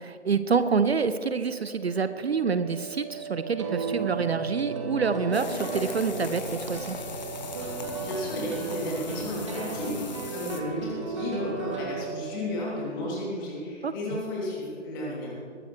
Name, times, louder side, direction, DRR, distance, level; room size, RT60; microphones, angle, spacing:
voice 1, 0.0-7.0 13.8-14.2, right 5 dB, 55° right, 12 dB, 0.7 m, -27 dB
sound 1, 1.7-9.8 10.1-10.7 11.0-12.7, right 9 dB, 70° left, 1.8 m, -40 dB
sound 2, 3.4-11.9, right 3 dB, 25° right, 1.3 m, -36 dB
sound 3, 5.3-10.6, left 4 dB, 35° left, 1.1 m, -38 dB
voice 2, 8.0-15.3, left 1 dB, 15° left, -4 dB, 3.1 m, -33 dB
21.0 x 13.0 x 3.3 m, 2.3 s
figure-of-eight pair, 155°, 37 cm